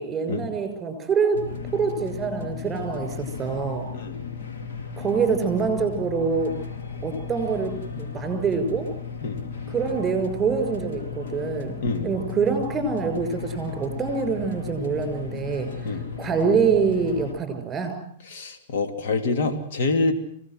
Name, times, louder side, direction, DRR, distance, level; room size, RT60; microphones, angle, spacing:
voice 1, 0.0-3.9 5.0-6.5 7.0-8.9 9.7-11.7 12.0-15.7 16.2-18.0, right 5 dB, 15° right, 8 dB, 6.5 m, -25 dB
sound 1, 1.3-17.3, left 6 dB, 75° left, 4.4 m, -35 dB
voice 2, 3.9-4.3 9.2-9.5 11.8-12.2 15.8-16.1 18.3-20.1, left 3 dB, 60° left, 6 dB, 3.0 m, -26 dB
25.0 x 18.0 x 7.9 m, 0.63 s
hypercardioid pair, 145°, 0 cm